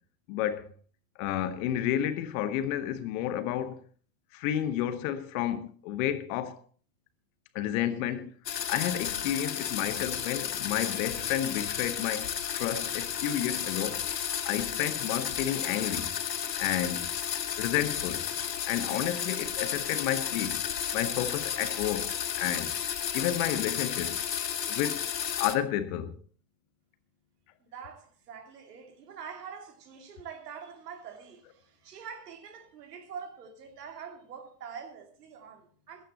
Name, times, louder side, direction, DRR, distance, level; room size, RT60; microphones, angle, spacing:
voice 1, 0.3-0.7 1.2-3.8 4.3-6.6 7.5-8.3 8.7-14.0 14.4-16.1 16.6-17.1 17.6-18.2 18.6-20.6 20.9-22.1 22.4-22.7 23.1-24.2 24.7-25.0 25.4-26.1, left 11 dB, 55° left, 1.5 m, -31 dB
sound 1, 8.5-25.6, left 9 dB, 85° left, 1.1 m, -33 dB
voice 2, 27.6-36.1, right 6 dB, 70° right, 2.7 m, -45 dB
15.0 x 12.0 x 4.2 m
figure-of-eight pair, 80°, 49 cm